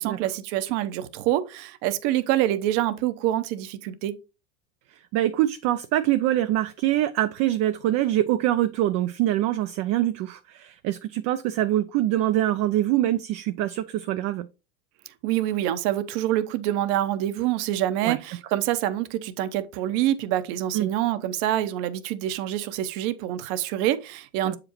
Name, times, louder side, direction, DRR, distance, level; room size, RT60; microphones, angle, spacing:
voice 1, 0.0-4.2 15.2-24.6, right 13 dB, 55° right, 0.9 m, -26 dB
voice 2, 4.9-14.5 18.0-18.2 20.7-20.9 24.4-24.6, right 13 dB, 40° right, 0.4 m, -24 dB
7.3 x 5.0 x 3.0 m
supercardioid pair, 125°, 41 cm